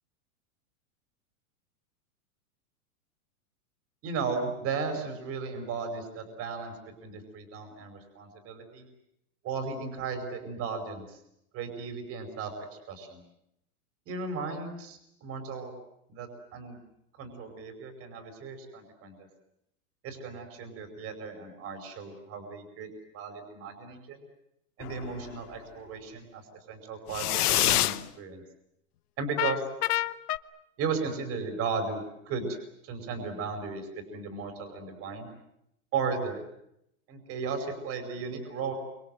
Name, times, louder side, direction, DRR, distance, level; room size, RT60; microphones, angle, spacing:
voice 1, 4.0-6.7 7.0-8.9 9.4-11.2 11.5-13.2 14.1-15.7 16.1-16.8 17.2-19.3 20.0-22.9 23.1-24.2 24.8-26.4 26.7-28.4 29.2-29.7 30.8-32.5 32.8-35.3 35.9-36.4 37.1-38.7, right 5 dB, 30° right, 6 dB, 5.4 m, -35 dB
sound 1, 24.8-25.4 27.1-28.0 29.4-30.4, left 14 dB, 80° left, 1.0 m, -27 dB
28.5 x 26.0 x 7.8 m, 0.82 s
supercardioid pair, 150°, 45 cm